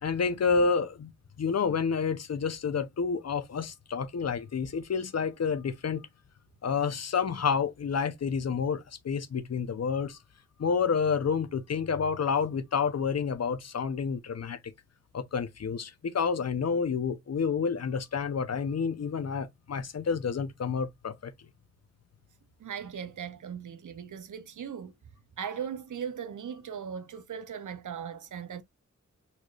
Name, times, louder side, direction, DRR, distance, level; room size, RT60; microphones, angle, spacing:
voice 1, 0.0-1.1 1.4-6.1 6.6-10.2 10.6-14.7 15.1-21.3, left 5 dB, 55° left, 0.5 m, -29 dB
voice 2, 22.6-24.9 25.4-28.6, right 7 dB, 75° right, 0.5 m, -38 dB
4.1 x 3.1 x 2.2 m
wide cardioid pair, 80°, 31 cm